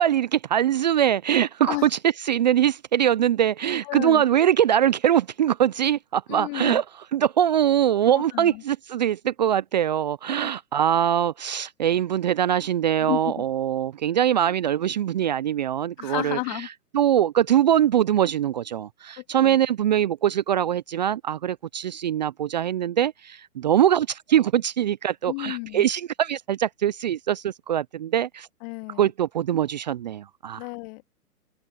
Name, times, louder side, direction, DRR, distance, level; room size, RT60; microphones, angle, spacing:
voice 1, 0.0-1.9 2.3-6.8 7.1-16.6 16.9-28.5 29.0-30.6, right 10 dB, 30° right, 0.5 m, -22 dB
voice 2, 3.8-4.2 6.3-6.8 8.2-8.6 10.4-10.5 13.0-13.4 14.4-14.6 16.0-16.7 19.2-19.6 25.3-25.9 28.6-29.1 30.6-31.1, left 32 dB, 30° left, 2.3 m, -32 dB
hypercardioid pair, 130°, 47 cm